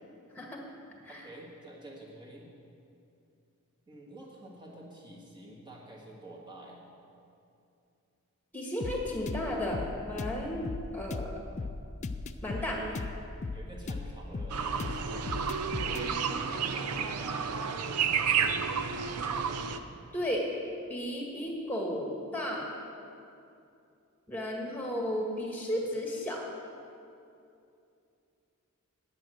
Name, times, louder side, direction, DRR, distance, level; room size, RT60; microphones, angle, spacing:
voice 1, 1.1-2.5 3.9-6.8 12.6-13.0 13.5-15.5 16.5-18.9 25.8-25.9, right 1 dB, 20° right, -3 dB, 1.7 m, -48 dB
voice 2, 8.5-10.6 10.9-11.3 12.4-12.8 15.8-16.4 20.1-20.4 20.9-22.7 24.3-26.4, left 1 dB, 10° left, -1 dB, 1.5 m, -34 dB
sound 1, 8.8-16.1, left 3 dB, 30° left, 0.3 m, -37 dB
sound 2, 14.5-19.8, right 6 dB, 90° right, 0.6 m, -31 dB
9.1 x 8.8 x 6.4 m, 2.6 s
head